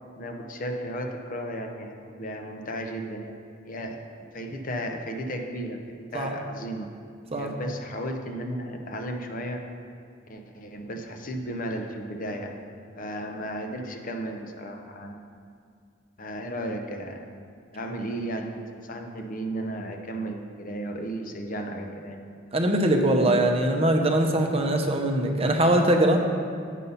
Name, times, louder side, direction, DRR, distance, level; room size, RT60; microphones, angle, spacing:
voice 1, 0.1-3.4 3.6-5.8 6.1-6.9 7.3-9.7 10.3-12.6 12.9-15.2 16.2-17.2 17.7-22.2, right 1 dB, 45° left, 4 dB, 0.7 m, -34 dB
voice 2, 22.5-26.2, right 1 dB, 30° right, 3 dB, 0.6 m, -22 dB
8.2 x 5.4 x 5.5 m, 2.2 s
head